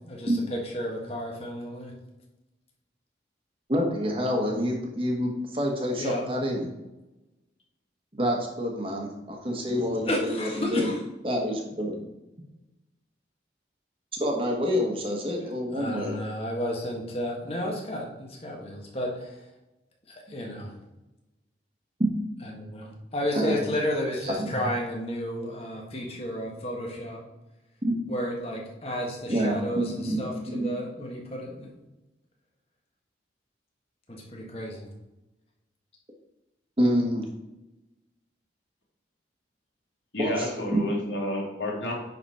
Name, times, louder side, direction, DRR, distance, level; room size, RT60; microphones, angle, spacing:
voice 1, 0.0-1.9 6.0-6.2 10.0-11.0 15.7-19.4 20.1-20.7 22.4-27.2 28.1-31.7 34.1-34.9, left 1 dB, 35° left, -1 dB, 1.6 m, -32 dB
voice 2, 3.7-6.7 8.2-10.9 11.2-11.9 14.1-16.2 23.3-23.6 24.2-24.5 27.9-28.0 29.3-30.2 30.5-30.7 36.8-37.3 40.2-40.3 40.7-40.8, equal, 30° right, 1 dB, 1.3 m, -27 dB
voice 3, 40.1-41.9, left 1 dB, 80° left, -2 dB, 2.3 m, -30 dB
10.0 x 4.1 x 4.3 m, 1.0 s
head